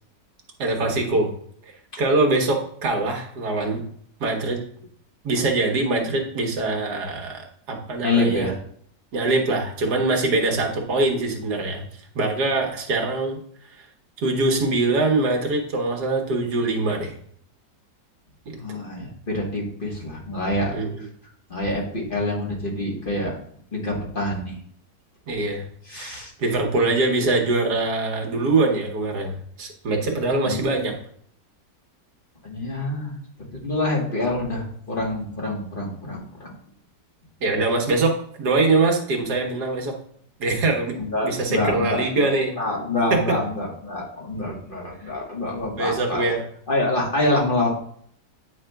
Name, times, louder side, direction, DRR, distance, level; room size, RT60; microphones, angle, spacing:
voice 1, 0.6-1.3 2.0-3.8 4.2-4.6 5.2-8.5 9.1-11.8 12.1-13.4 13.7-13.8 14.2-17.2 18.7-18.8 20.7-21.0 25.3-25.6 25.9-30.9 37.4-39.9 40.4-40.9 41.2-42.5 43.1-43.4 45.8-46.4, right 2 dB, 65° right, 2 dB, 1.6 m, -23 dB
voice 2, 8.0-8.6 18.6-20.7 21.5-23.4 23.7-24.6 25.8-26.3 30.4-30.6 32.4-33.1 33.5-36.5 41.0-42.3 42.5-46.4 46.7-47.8, left 2 dB, 30° left, -2 dB, 1.4 m, -26 dB
9.1 x 4.8 x 2.3 m, 0.63 s
omnidirectional pair, 1.9 m